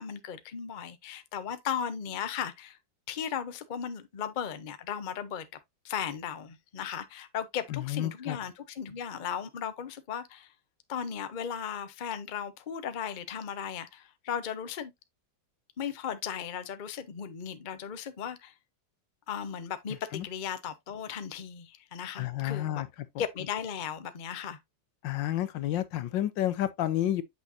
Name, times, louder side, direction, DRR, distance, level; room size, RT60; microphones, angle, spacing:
voice 1, 0.0-2.8 3.1-5.5 5.8-10.5 10.9-14.9 15.8-18.5 19.3-22.8 23.2-24.6, left 8 dB, 45° left, 0.6 m, -36 dB
voice 2, 7.7-8.4 20.1-20.2 22.2-22.9 25.0-27.2, left 12 dB, 80° left, 1.5 m, -30 dB
8.5 x 5.4 x 2.7 m
omnidirectional pair, 2.0 m